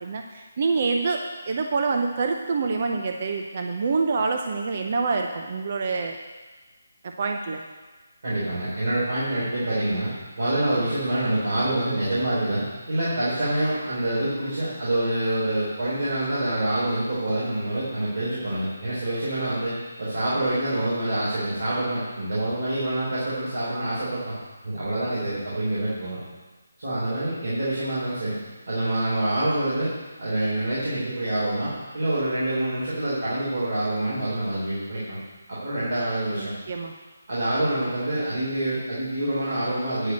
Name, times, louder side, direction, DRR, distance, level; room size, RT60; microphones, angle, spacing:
voice 1, 0.0-6.2 7.2-7.6 36.4-36.9, right 4 dB, 35° right, 3 dB, 0.6 m, -26 dB
voice 2, 8.2-10.1 10.4-24.3 24.6-26.2 26.8-28.4 28.7-29.9 30.2-35.2 35.5-36.5 37.3-40.1, right 1 dB, 55° right, -9 dB, 4.0 m, -26 dB
9.7 x 5.2 x 8.1 m, 1.3 s
hypercardioid pair, 175°, 0 cm